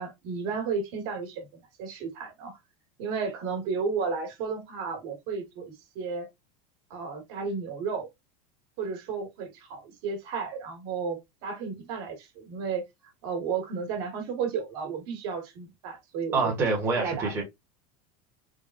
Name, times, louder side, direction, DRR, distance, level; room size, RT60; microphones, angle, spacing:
voice 1, 0.0-2.6 3.0-6.3 6.9-8.1 8.8-12.8 13.2-16.6 16.9-17.4, right 5 dB, 55° right, 1.3 m, -33 dB
voice 2, 16.3-17.4, right 3 dB, 15° right, 0.8 m, -26 dB
3.5 x 2.1 x 2.4 m
supercardioid pair, 170°, 18 cm